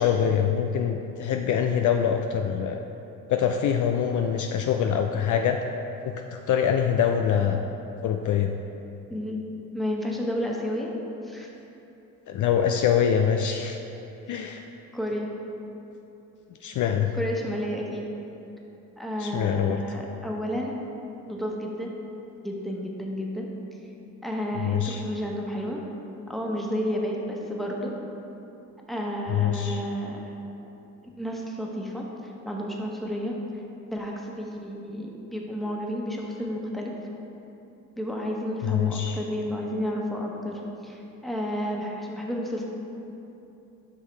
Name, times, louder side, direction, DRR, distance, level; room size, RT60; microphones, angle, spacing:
voice 1, 0.0-2.8 3.3-5.6 6.0-7.6 8.0-8.5 12.3-13.8 14.3-14.7 16.6-17.1 19.2-19.8 24.5-25.0 29.3-29.8 38.6-39.2, left 8 dB, 50° left, 4 dB, 0.5 m, -24 dB
voice 2, 9.7-10.9 11.2-11.5 14.3-14.4 14.9-15.3 17.1-18.0 19.0-20.8 21.3-21.9 22.4-23.5 24.2-25.8 26.3-27.9 28.9-30.2 31.2-33.3 33.9-36.9 38.0-42.7, equal, ahead, -2 dB, 1.2 m, -31 dB
8.3 x 5.5 x 3.2 m, 3.0 s
hypercardioid pair, 55°, 38 cm